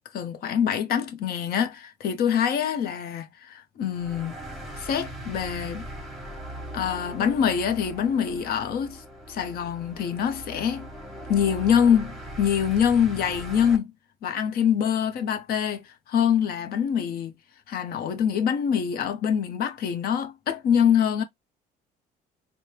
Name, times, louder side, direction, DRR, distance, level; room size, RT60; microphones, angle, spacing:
voice 1, 0.1-4.4 4.8-5.9 6.7-9.0 9.3-10.9 11.3-13.9 14.2-17.3 17.7-21.2, left 8 dB, 65° left, 0.8 m, -25 dB
sound 1, 3.9-13.8, right 1 dB, ahead, 1.2 m, -40 dB
4.2 x 2.1 x 3.2 m
cardioid pair, 110°, 17 cm